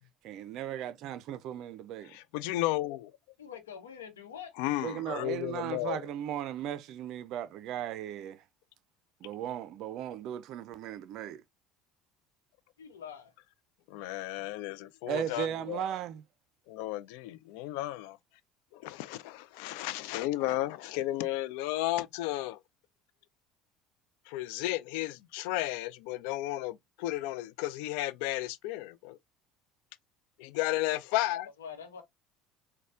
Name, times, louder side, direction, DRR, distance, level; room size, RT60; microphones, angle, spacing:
voice 1, 0.2-2.1 4.8-8.4 9.2-11.4 15.1-16.2, right 11 dB, 55° right, 0.4 m, -37 dB
voice 2, 2.0-3.1 4.6-6.0 13.9-15.8 16.7-18.2 18.7-22.6 24.3-29.2 30.4-31.5, left 16 dB, 70° left, 0.4 m, -33 dB
voice 3, 3.4-4.5 12.8-13.3 31.6-32.0, left 7 dB, 85° left, 0.8 m, -45 dB
4.1 x 2.1 x 3.4 m
hypercardioid pair, 65°, 0 cm